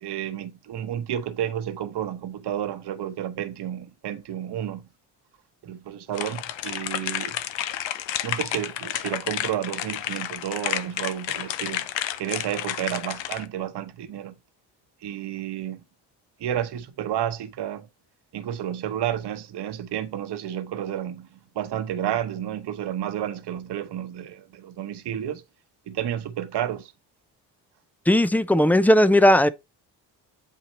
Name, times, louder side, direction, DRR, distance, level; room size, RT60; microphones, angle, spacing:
voice 1, 0.0-4.9 5.6-7.4 8.2-11.9 12.2-14.3 15.0-15.8 16.4-17.9 18.3-21.3 21.5-25.4 25.9-26.9, right 10 dB, 60° right, 1.1 m, -31 dB
sound 1, 6.1-13.4, left 12 dB, 70° left, 0.8 m, -31 dB
voice 2, 28.1-29.5, left 1 dB, 5° left, 0.5 m, -17 dB
8.3 x 2.8 x 4.2 m
supercardioid pair, 60°, 47 cm